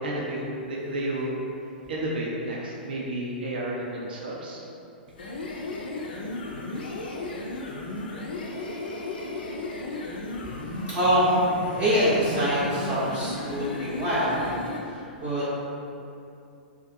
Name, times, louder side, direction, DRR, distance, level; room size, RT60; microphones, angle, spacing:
voice 1, 0.0-1.3 1.9-4.6, right 1 dB, 70° right, -4 dB, 0.4 m, -31 dB
sound 1, 5.1-14.9, left 2 dB, 70° left, 0.3 m, -34 dB
voice 2, 10.4-14.4 14.8-15.6, equal, 25° right, -11 dB, 0.6 m, -25 dB
2.5 x 2.4 x 2.5 m, 2.7 s
figure-of-eight pair, 105°, 5 cm